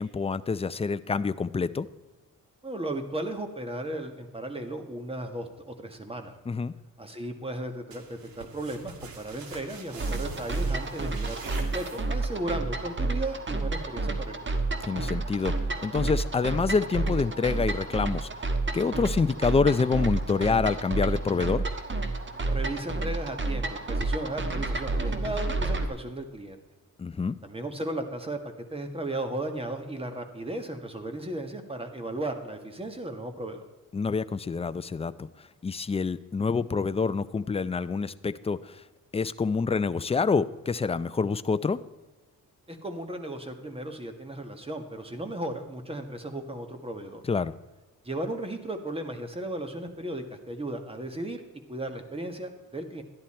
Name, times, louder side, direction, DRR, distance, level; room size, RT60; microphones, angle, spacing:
voice 1, 0.0-1.9 6.5-6.7 14.8-15.5 15.8-18.3 18.7-21.6 27.0-27.4 33.9-38.8 39.1-41.8 47.2-47.5, left 4 dB, 15° left, 13 dB, 0.4 m, -27 dB
voice 2, 2.6-6.4 7.0-14.5 22.4-26.6 27.4-28.4 28.7-33.7 42.7-47.2 48.0-51.4 51.7-53.0, right 1 dB, 15° right, 6 dB, 1.6 m, -35 dB
sound 1, 7.9-12.4, right 4 dB, 85° right, 2.0 m, -44 dB
sound 2, 10.0-25.9, right 3 dB, 35° right, 1.4 m, -30 dB
13.0 x 10.5 x 4.3 m, 1.2 s
cardioid pair, 110°, 35 cm